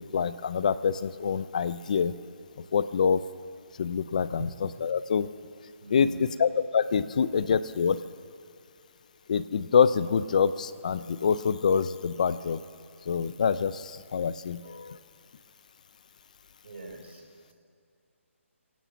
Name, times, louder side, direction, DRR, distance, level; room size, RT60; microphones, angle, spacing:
voice 1, 0.0-2.1 2.7-3.2 3.8-5.3 5.9-8.0 9.3-12.6 13.1-13.8 14.1-15.0, left 6 dB, 35° left, 16 dB, 0.5 m, -26 dB
voice 2, 5.8-6.3 16.6-17.2, right 3 dB, 55° right, 0 dB, 4.4 m, -41 dB
26.0 x 17.5 x 6.0 m, 2.4 s
hypercardioid pair, 175°, 7 cm